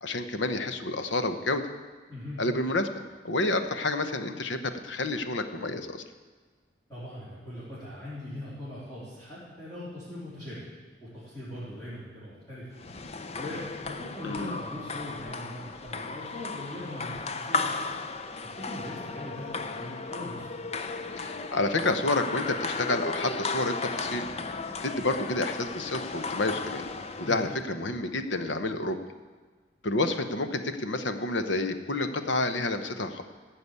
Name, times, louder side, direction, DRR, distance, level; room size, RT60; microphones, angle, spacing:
voice 1, 0.0-1.6 2.4-6.0 14.2-14.6 21.2-24.3 24.8-26.8 27.2-29.0 29.8-33.2, left 2 dB, 75° left, 8 dB, 0.9 m, -29 dB
voice 2, 2.1-2.4 6.9-10.6 11.0-12.7 13.0-13.1 13.4-17.8 18.4-20.5 27.2-27.4, left 1 dB, 15° left, -12 dB, 4.0 m, -40 dB
sound 1, 12.8-27.6, left 3 dB, 35° left, 0.5 m, -35 dB
15.0 x 6.0 x 8.2 m, 1.4 s
head